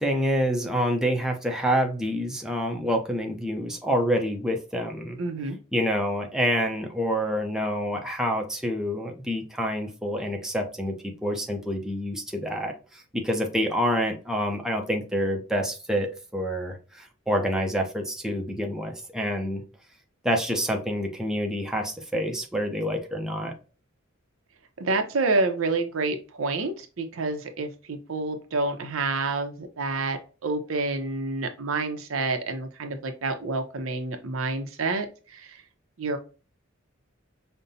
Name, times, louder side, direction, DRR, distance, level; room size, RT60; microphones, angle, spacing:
voice 1, 0.0-5.2 5.7-11.0 11.2-19.6 20.2-23.5, equal, 5° right, 2 dB, 0.6 m, -27 dB
voice 2, 5.2-5.6 24.8-35.6 36.0-36.2, right 3 dB, 85° right, 6 dB, 0.7 m, -28 dB
5.3 x 2.1 x 2.6 m, 0.34 s
head